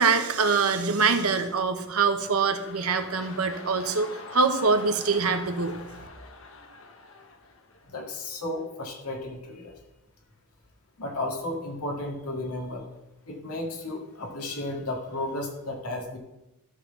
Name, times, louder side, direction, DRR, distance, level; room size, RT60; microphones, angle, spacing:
voice 1, 0.0-5.8, right 4 dB, 75° right, 7 dB, 1.0 m, -24 dB
sound 1, 1.8-8.3 8.8-8.9, left 3 dB, 60° left, 1.1 m, -45 dB
voice 2, 7.9-9.8 11.0-12.9 13.3-16.2, left 2 dB, 85° left, 0 dB, 2.1 m, -33 dB
12.5 x 4.2 x 7.0 m, 0.94 s
head